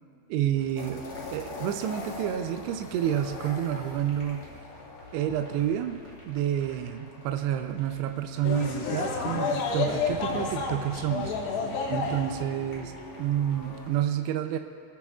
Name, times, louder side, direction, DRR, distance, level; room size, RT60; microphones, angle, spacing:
voice 1, 0.3-1.0 1.3-4.5 5.1-6.0 6.3-11.3 11.9-12.9 13.2-14.6, right 11 dB, 80° right, 6 dB, 2.7 m, -29 dB
sound 1, 0.6-14.0, equal, 5° left, 3.6 m, -49 dB
sound 2, 0.7-14.0, left 3 dB, 55° left, 3.2 m, -45 dB
sound 3, 8.4-12.6, left 4 dB, 75° left, 3.7 m, -30 dB
26.0 x 15.5 x 2.4 m, 2.3 s
omnidirectional pair, 4.8 m